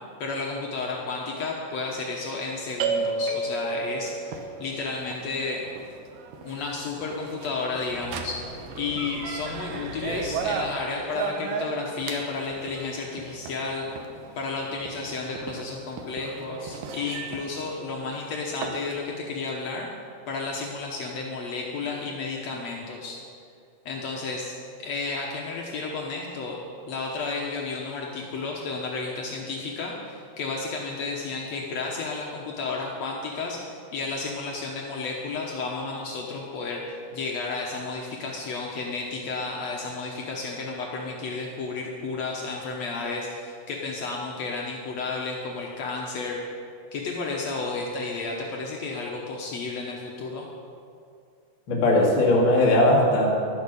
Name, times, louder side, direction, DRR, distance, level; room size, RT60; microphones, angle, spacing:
voice 1, 0.2-5.6 6.4-8.4 8.7-13.8 14.3-19.9 20.3-23.2 23.8-24.5 24.8-26.6 26.9-36.8 37.1-46.4 46.9-50.5, left 4 dB, 90° left, -1 dB, 1.5 m, -32 dB
sound 1, 2.8-18.8, right 4 dB, 70° right, 2.1 m, -34 dB
voice 2, 51.7-53.3, left 1 dB, 40° left, -3 dB, 2.1 m, -19 dB
12.0 x 10.5 x 6.8 m, 2.3 s
omnidirectional pair, 4.7 m